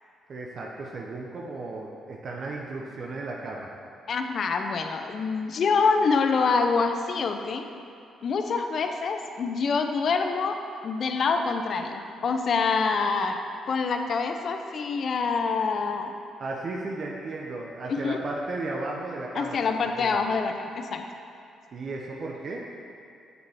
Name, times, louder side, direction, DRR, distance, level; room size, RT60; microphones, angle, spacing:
voice 1, 0.3-3.7 16.4-20.2 21.7-22.7, right 2 dB, 50° right, -2 dB, 0.7 m, -35 dB
voice 2, 4.1-7.7 8.2-13.4 13.7-16.1 17.9-18.2 19.3-21.0, left 4 dB, 55° left, 6 dB, 0.5 m, -26 dB
7.0 x 6.6 x 3.4 m, 2.6 s
cardioid pair, 90°, 0 cm